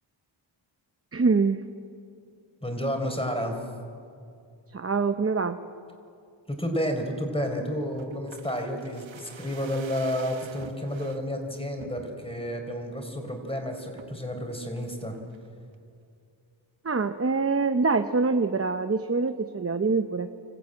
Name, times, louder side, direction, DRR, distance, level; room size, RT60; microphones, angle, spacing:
voice 1, 1.1-1.6 4.7-5.6 16.8-20.3, right 4 dB, 30° right, 8 dB, 0.9 m, -25 dB
voice 2, 2.6-3.6 6.5-15.2, equal, 10° left, 4 dB, 4.2 m, -31 dB
sound 1, 8.0-11.2 11.8-12.4 12.8-12.9 13.2-13.5 14.0-14.3 14.8-15.5 15.7-15.8, right 7 dB, 75° right, 1.1 m, -47 dB
26.0 x 14.5 x 8.9 m, 2.4 s
cardioid pair, 65°, 47 cm